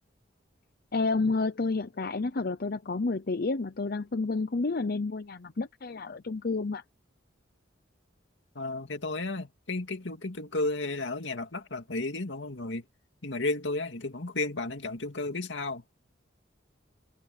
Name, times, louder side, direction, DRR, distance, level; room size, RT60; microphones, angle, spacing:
voice 1, 0.9-6.8, left 3 dB, 55° left, 0.7 m, -30 dB
voice 2, 8.5-12.8 13.2-15.8, left 2 dB, 75° left, 2.4 m, -33 dB
head